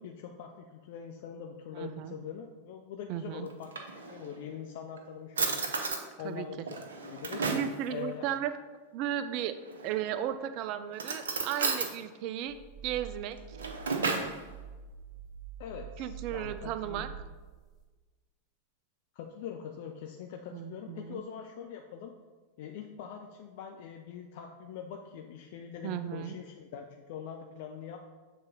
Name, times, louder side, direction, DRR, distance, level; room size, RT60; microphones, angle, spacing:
voice 1, 0.0-5.7 6.2-7.5 7.9-8.3 15.6-17.2 19.1-22.1 22.6-28.0, left 8 dB, 50° left, 4 dB, 0.4 m, -43 dB
voice 2, 1.8-2.1 3.1-3.5 6.2-6.5 7.5-8.5 8.9-9.6 9.8-12.6 12.8-13.6 16.0-17.1 20.5-21.2 25.8-26.3, right 11 dB, 40° right, 10 dB, 0.4 m, -35 dB
Drawer open or close, 3.5-4.4 5.0-5.1 5.4-6.0 6.7-7.8 9.6-10.2 10.9-11.9 13.3-14.4, right 4 dB, 65° right, 0.7 m, -33 dB
sound 1, 12.5-17.8, right 6 dB, 10° right, 1.4 m, -46 dB
7.0 x 3.7 x 3.9 m, 1.3 s
figure-of-eight pair, 90°, 0 cm